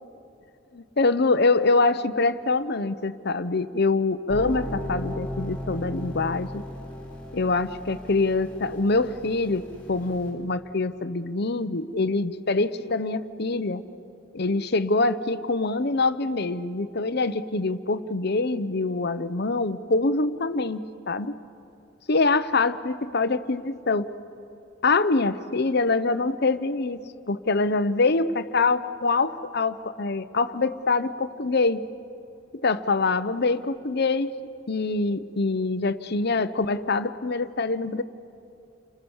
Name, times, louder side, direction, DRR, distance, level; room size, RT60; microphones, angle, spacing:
voice 1, 0.7-6.6 7.3-13.8 14.3-20.8 21.1-21.4 22.1-24.1 24.8-27.0 27.3-31.8 32.6-34.3 34.7-38.0, left 3 dB, 55° left, 12 dB, 0.9 m, -24 dB
sound 1, 4.3-10.3, left 1 dB, 10° left, 6.6 m, -36 dB
29.5 x 25.5 x 7.2 m, 2.7 s
head